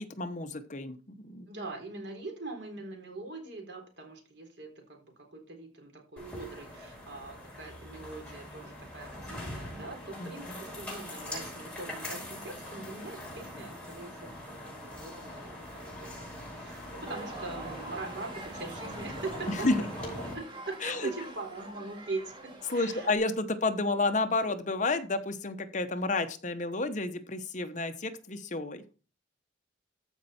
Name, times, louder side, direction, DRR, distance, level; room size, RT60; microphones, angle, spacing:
voice 1, 0.0-1.5 10.2-10.6 19.5-19.8 20.8-21.1 22.7-28.8, left 2 dB, 40° left, 9 dB, 1.0 m, -31 dB
voice 2, 1.5-19.7 20.0-23.3, right 3 dB, 65° right, 2 dB, 3.8 m, -42 dB
sound 1, 6.2-20.3, left 1 dB, 5° left, 5.9 m, -42 dB
sound 2, 17.0-23.2, right 2 dB, 25° right, 2.2 m, -45 dB
14.5 x 5.4 x 4.3 m, 0.36 s
head